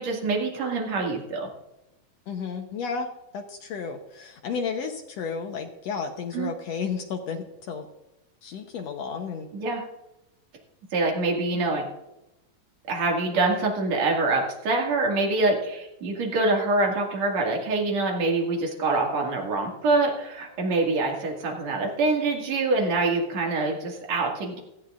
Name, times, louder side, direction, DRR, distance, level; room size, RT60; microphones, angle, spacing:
voice 1, 0.0-1.5 6.3-6.5 9.5-9.8 10.9-11.8 12.9-24.6, right 3 dB, 50° right, 0 dB, 3.1 m, -25 dB
voice 2, 2.3-3.1 3.3-7.9 8.4-9.5, left 5 dB, 75° left, 4 dB, 1.5 m, -32 dB
18.5 x 14.0 x 2.5 m, 0.94 s
omnidirectional pair, 4.2 m